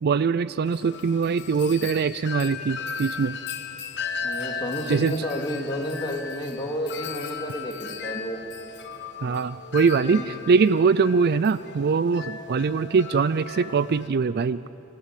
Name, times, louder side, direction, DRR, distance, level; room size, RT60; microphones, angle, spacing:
voice 1, 0.0-3.4 4.9-5.2 9.2-14.6, right 5 dB, 45° right, 16 dB, 0.4 m, -22 dB
Wind chime, 0.7-14.1, left 5 dB, 50° left, 1.3 m, -36 dB
voice 2, 4.2-8.4 10.0-10.2, equal, 20° left, 0 dB, 2.4 m, -31 dB
29.0 x 15.5 x 8.3 m, 3.0 s
head